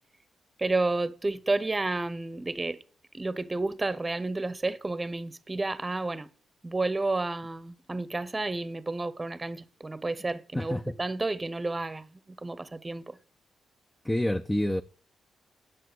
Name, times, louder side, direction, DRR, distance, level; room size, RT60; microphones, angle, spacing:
voice 1, 0.6-2.8 3.1-6.3 6.6-13.2, right 2 dB, 20° right, 1.0 m, -31 dB
voice 2, 10.5-10.9 14.0-14.8, left 1 dB, 10° left, 0.7 m, -28 dB
10.5 x 7.6 x 7.9 m
cardioid pair, 75°, 0 cm